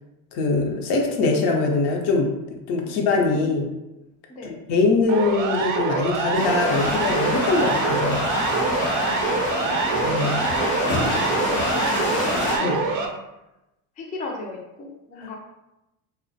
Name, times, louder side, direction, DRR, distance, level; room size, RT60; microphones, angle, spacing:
voice 1, 0.3-2.3 2.7-3.7 4.5-8.2 10.0-10.4 12.6-12.7, left 3 dB, 70° left, 2 dB, 0.6 m, -22 dB
voice 2, 2.8-3.8 4.3-4.6 9.0-9.8 10.1-13.2 14.0-15.4, left 2 dB, 20° left, -1 dB, 0.3 m, -37 dB
Siren, 5.1-13.1, right 4 dB, 45° right, 0.5 m, -25 dB
sound 1, 6.3-12.6, left 2 dB, 85° left, 0.9 m, -26 dB
2.4 x 2.1 x 2.6 m, 0.94 s
cardioid pair, 110°, 42 cm